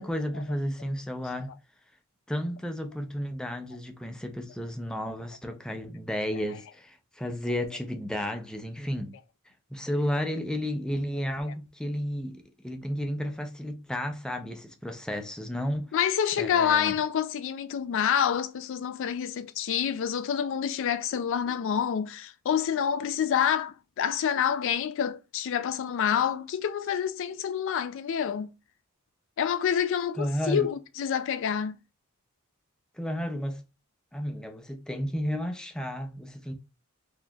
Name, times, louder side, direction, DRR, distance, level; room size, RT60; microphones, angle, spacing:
voice 1, 0.0-1.5 2.3-9.1 9.7-15.9 16.4-16.9 30.2-30.7 33.0-33.6 34.1-36.5, equal, 5° left, 0.5 m, -32 dB
voice 2, 15.9-28.5 29.4-31.8, left 8 dB, 60° left, 0.3 m, -27 dB
4.0 x 2.9 x 2.3 m
head